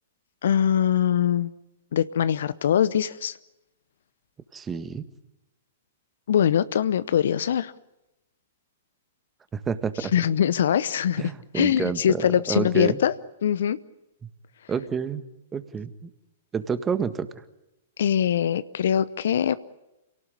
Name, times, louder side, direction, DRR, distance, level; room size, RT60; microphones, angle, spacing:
voice 1, 0.4-1.5 1.9-3.4 6.3-7.7 10.1-13.1 13.4-13.8 18.0-19.6, left 9 dB, 65° left, 16 dB, 0.8 m, -22 dB
voice 2, 4.5-5.0 9.5-10.1 11.2-12.2 12.5-13.0 14.7-15.2 15.5-16.1 16.5-17.3, right 6 dB, 15° right, 11 dB, 1.7 m, -29 dB
27.5 x 18.0 x 9.8 m, 0.95 s
figure-of-eight pair, 110°, 0 cm